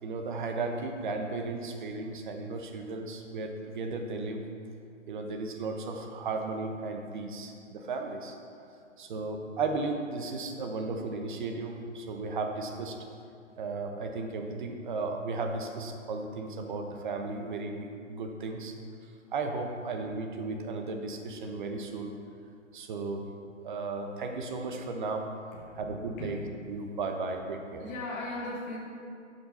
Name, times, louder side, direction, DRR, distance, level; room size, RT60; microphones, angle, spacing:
voice 1, 0.0-4.4 5.1-8.3 9.0-13.0 13.6-18.7 19.3-22.1 22.7-23.3 23.6-25.3 25.8-26.4 26.7-27.8, right 3 dB, 40° right, 4 dB, 1.0 m, -35 dB
voice 2, 27.8-28.8, left 2 dB, 10° left, -4 dB, 0.5 m, -37 dB
11.5 x 5.5 x 4.2 m, 2.5 s
hypercardioid pair, 145°, 38 cm